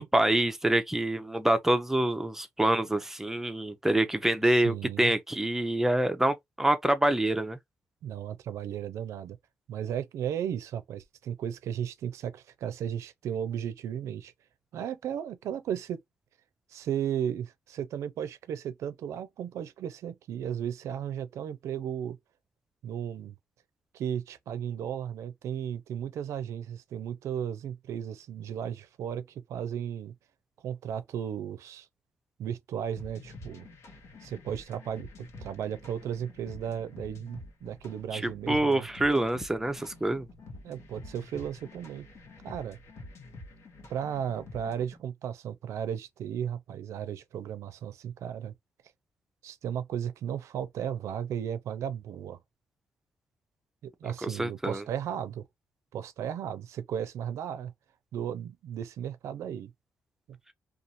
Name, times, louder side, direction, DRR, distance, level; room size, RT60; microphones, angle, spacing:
voice 1, 0.0-7.6 38.1-40.3 54.2-54.8, right 1 dB, 5° right, 0.5 m, -26 dB
voice 2, 4.4-5.1 8.0-9.4 9.7-14.3 14.7-16.0 16.7-22.2 22.8-23.4 23.9-30.1 30.6-31.9 32.4-33.7 34.2-38.9 40.6-42.1 42.4-42.8 43.9-48.5 49.4-52.4 53.8-55.4 55.9-57.7 58.1-59.7 60.3-60.4, right 9 dB, 80° right, 0.4 m, -35 dB
sound 1, 33.0-45.0, left 2 dB, 65° left, 1.0 m, -48 dB
2.6 x 2.3 x 2.7 m
cardioid pair, 95°, 5 cm